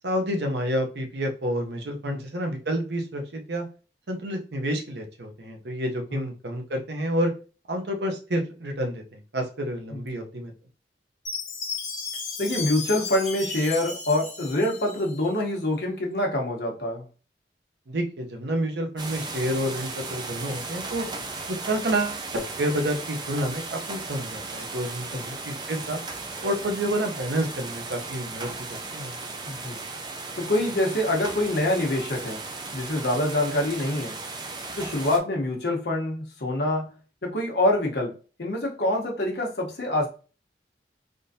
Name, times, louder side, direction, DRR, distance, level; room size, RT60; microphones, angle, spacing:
voice 1, 0.0-3.7 4.1-7.3 7.7-10.5 17.9-21.1 21.5-25.1 25.4-26.0 26.4-28.5 28.9-29.1, right 1 dB, 75° right, 4 dB, 0.7 m, -29 dB
voice 2, 9.9-10.2 12.4-17.1 25.1-25.3 29.5-29.8 30.4-32.4 32.7-34.2 34.7-36.9 37.2-38.1 38.4-40.1, left 1 dB, 70° left, 0 dB, 0.9 m, -26 dB
Chime, 11.3-15.4, left 4 dB, 40° left, 0.9 m, -34 dB
sound 1, 19.0-35.2, right 3 dB, 25° right, 0.4 m, -36 dB
3.6 x 2.6 x 2.6 m, 0.35 s
head